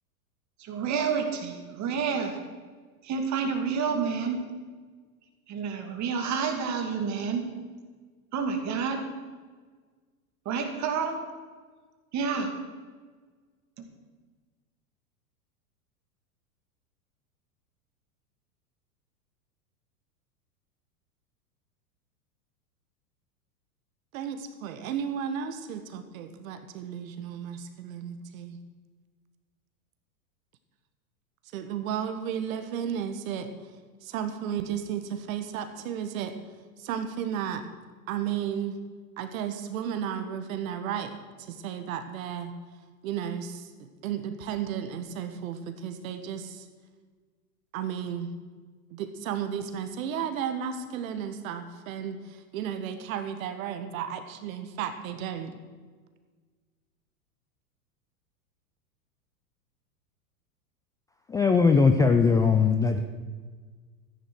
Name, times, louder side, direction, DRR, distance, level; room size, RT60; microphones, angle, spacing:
voice 1, 0.6-2.4 3.0-4.4 5.5-7.5 8.3-9.0 10.5-11.2 12.1-12.5 13.8-13.9, right 6 dB, 35° right, 5 dB, 2.6 m, -29 dB
voice 2, 24.1-28.6 31.5-33.5 34.0-36.4 36.8-37.6 38.1-38.8 39.2-42.5 43.0-43.7 44.0-46.7 47.7-48.3 48.9-55.6, right 8 dB, 60° right, 9 dB, 1.6 m, -33 dB
voice 3, 61.3-63.0, left 5 dB, 10° left, 6 dB, 0.4 m, -20 dB
13.5 x 10.5 x 6.4 m, 1.5 s
hypercardioid pair, 105°, 46 cm